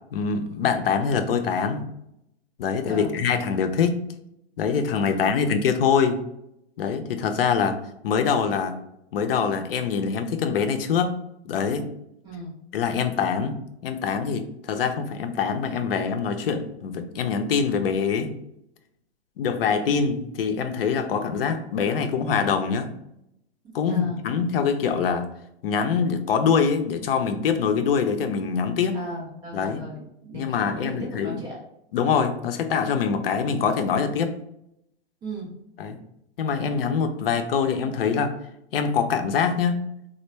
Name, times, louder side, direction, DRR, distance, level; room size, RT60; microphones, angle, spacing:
voice 1, 0.1-1.8 2.6-3.9 4.6-6.2 6.8-7.8 8.0-8.7 9.1-11.1 11.4-11.9 12.7-13.5 13.8-18.3 19.4-22.9 23.7-25.3 25.6-29.0 29.5-29.8 30.3-31.4 31.9-34.3 35.8-36.0 36.4-38.3 38.7-39.8, left 6 dB, 60° left, 7 dB, 0.5 m, -24 dB
voice 2, 5.1-5.5 12.2-12.6 23.8-24.2 28.9-31.6 35.2-35.5, right 1 dB, 15° right, -2 dB, 0.3 m, -37 dB
3.3 x 2.4 x 3.1 m, 0.80 s
hypercardioid pair, 120°, 33 cm